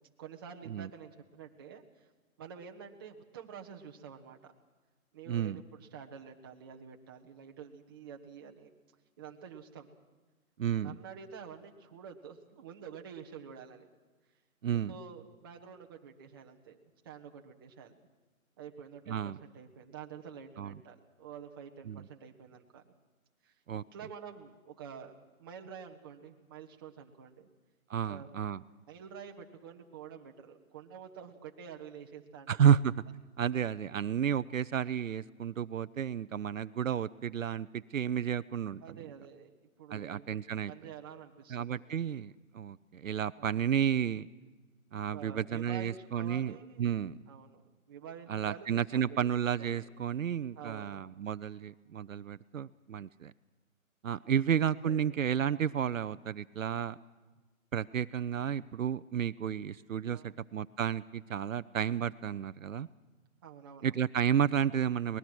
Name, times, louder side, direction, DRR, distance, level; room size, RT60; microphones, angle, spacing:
voice 1, 0.2-2.1 2.4-4.5 5.1-8.7 9.2-9.9 10.7-13.9 14.7-16.8 17.0-18.0 18.6-22.8 23.4-23.5 23.9-27.5 28.1-28.3 28.9-32.8 38.8-39.5 39.8-40.3 40.7-42.1 43.4-43.6 45.1-46.9 47.3-47.6 47.9-49.2 49.6-49.9 50.6-51.0 54.6-55.1 60.1-60.4 63.4-63.9, right 7 dB, 15° right, 2 dB, 1.0 m, -48 dB
voice 2, 5.3-5.6 10.6-11.0 14.6-14.9 19.1-19.4 20.6-20.7 21.9-22.1 23.7-23.8 27.9-28.6 32.5-32.9 33.4-39.0 39.9-40.7 41.5-44.3 44.9-47.2 48.3-53.3 54.0-57.0 57.7-62.9 63.8-65.2, right 8 dB, 65° right, 15 dB, 0.6 m, -31 dB
23.5 x 19.5 x 6.2 m, 1.3 s
hypercardioid pair, 160°, 43 cm